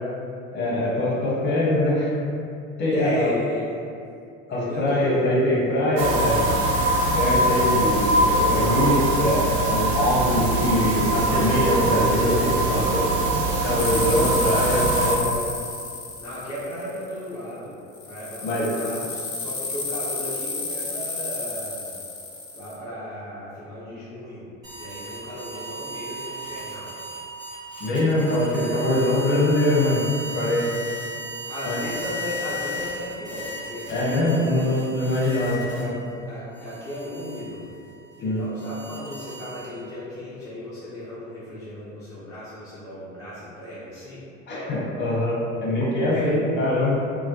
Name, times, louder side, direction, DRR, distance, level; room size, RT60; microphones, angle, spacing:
voice 1, 0.5-2.1 2.8-3.3 4.5-6.6 7.2-13.1 13.6-15.2 18.4-18.7 27.8-30.0 30.3-30.7 31.6-31.8 33.9-35.9 38.2-38.4 44.5-46.9, left 1 dB, 30° left, -6 dB, 0.8 m, -23 dB
voice 2, 2.9-3.7 4.5-5.2 10.2-10.3 16.2-17.8 18.1-22.0 22.5-24.5 24.8-27.0 31.5-34.7 36.3-37.7 38.2-44.3 46.1-46.4, left 1 dB, 10° left, -11 dB, 0.4 m, -35 dB
sound 1, 6.0-15.1, right 1 dB, 60° right, 0.5 m, -22 dB
sound 2, 13.8-17.3 17.9-22.8, left 3 dB, 85° left, 0.5 m, -32 dB
sound 3, 24.6-36.1 36.5-39.9, equal, 85° right, 1.1 m, -36 dB
2.2 x 2.1 x 2.7 m, 2.5 s
figure-of-eight pair, 70°, 39 cm